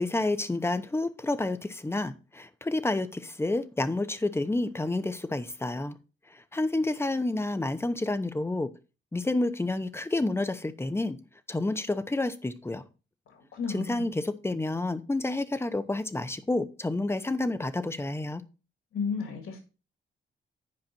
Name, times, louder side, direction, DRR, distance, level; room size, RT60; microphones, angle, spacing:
voice 1, 0.0-6.0 6.3-8.7 9.1-11.2 11.5-12.8 13.7-18.4, left 2 dB, 10° left, 0.8 m, -29 dB
voice 2, 13.3-14.1 18.9-19.6, left 5 dB, 85° left, 2.2 m, -33 dB
10.5 x 5.0 x 4.4 m
cardioid pair, 100°, 21 cm